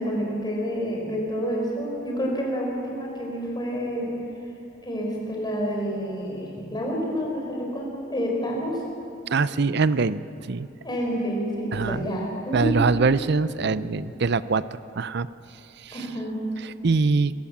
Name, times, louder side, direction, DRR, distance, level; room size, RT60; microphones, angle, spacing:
voice 1, 0.0-4.1 4.8-8.8 10.8-12.9 15.9-16.4, equal, 20° left, -1 dB, 5.3 m, -28 dB
voice 2, 9.3-10.2 10.5-10.7 11.7-12.1 12.5-15.3 15.8-16.1 16.6-17.3, right 4 dB, 55° right, 15 dB, 0.6 m, -23 dB
27.0 x 16.0 x 7.3 m, 2.9 s
head